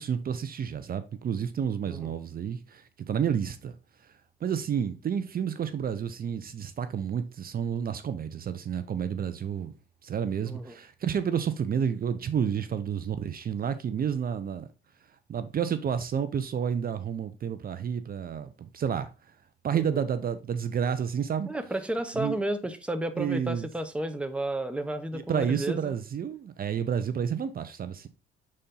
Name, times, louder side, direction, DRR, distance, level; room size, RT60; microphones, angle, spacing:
voice 1, 0.0-3.8 4.0-4.1 4.4-9.7 10.0-14.7 15.3-19.1 19.6-21.5 22.1-22.4 23.2-23.7 25.1-28.1, right 8 dB, 50° right, 0.7 m, -30 dB
voice 2, 10.5-10.8 19.7-20.0 21.5-25.9, right 1 dB, 5° right, 0.9 m, -32 dB
6.5 x 4.3 x 3.8 m
cardioid pair, 90°, 20 cm